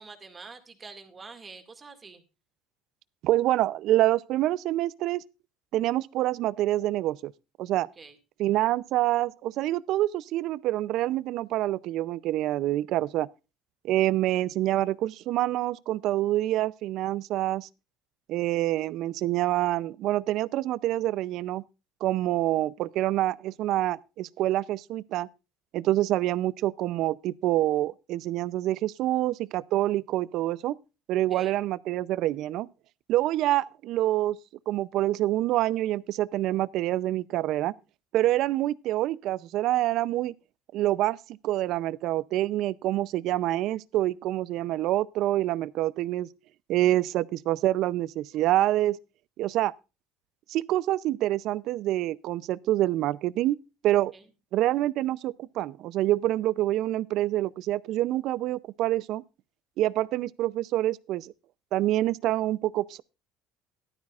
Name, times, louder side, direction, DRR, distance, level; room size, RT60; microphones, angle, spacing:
voice 1, 0.0-2.2 7.9-8.2 31.3-31.6 54.1-54.3, right 4 dB, 20° right, 2.1 m, -46 dB
voice 2, 3.2-5.2 5.7-7.3 7.6-7.9 8.4-13.3 13.8-17.7 18.3-21.6 22.0-25.3 25.7-30.8 31.1-32.7 33.1-34.4 34.7-37.7 38.1-40.3 40.7-46.3 46.7-49.0 49.4-49.7 50.5-53.6 53.8-54.1 54.5-59.2 59.8-61.3 61.7-63.0, right 14 dB, 55° right, 0.5 m, -26 dB
14.5 x 12.0 x 2.4 m
cardioid pair, 140°, 0 cm